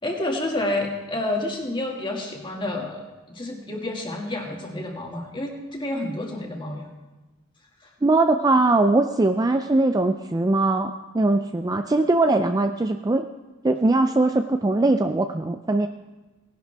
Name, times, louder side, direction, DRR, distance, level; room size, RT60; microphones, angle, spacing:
voice 1, 0.0-6.9 7.8-7.9, left 1 dB, 20° left, 0 dB, 1.9 m, -29 dB
voice 2, 8.0-13.3 13.6-15.9, right 2 dB, 15° right, 7 dB, 0.3 m, -21 dB
18.5 x 11.0 x 3.4 m, 1.1 s
head